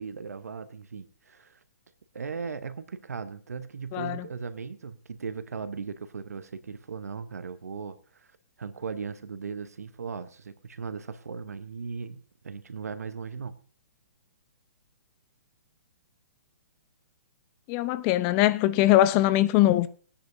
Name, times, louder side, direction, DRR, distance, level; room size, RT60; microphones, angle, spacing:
voice 1, 0.0-1.6 2.1-8.3 8.6-13.6, right 5 dB, 80° right, 1.0 m, -38 dB
voice 2, 3.9-4.2 17.7-19.9, left 14 dB, 30° left, 0.7 m, -22 dB
20.0 x 10.0 x 2.7 m
hypercardioid pair, 130°, 8 cm